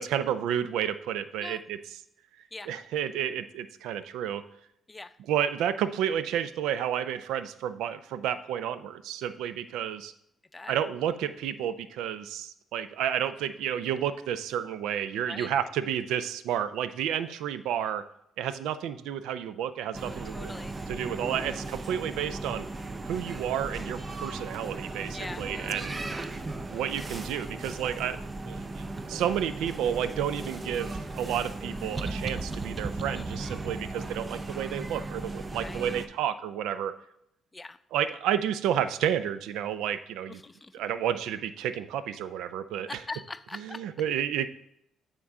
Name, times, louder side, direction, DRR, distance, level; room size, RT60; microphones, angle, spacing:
voice 1, 0.0-1.8 2.7-4.4 5.3-10.1 10.7-18.0 18.4-20.5 20.9-22.7 23.0-26.0 26.7-28.2 28.5-28.6 29.1-36.9 37.9-40.4 40.7-42.9 43.5-44.5, right 9 dB, 90° right, 13 dB, 0.4 m, -31 dB
sound 1, 19.9-36.1, right 2 dB, 25° right, 0.6 m, -36 dB
voice 2, 20.2-20.8 25.1-26.3 33.1-33.6 35.5-35.9 37.5-37.8 40.3-40.8 42.9-43.9, left 2 dB, 20° left, 14 dB, 0.4 m, -42 dB
9.5 x 3.7 x 4.8 m, 0.76 s
cardioid pair, 90°, 0 cm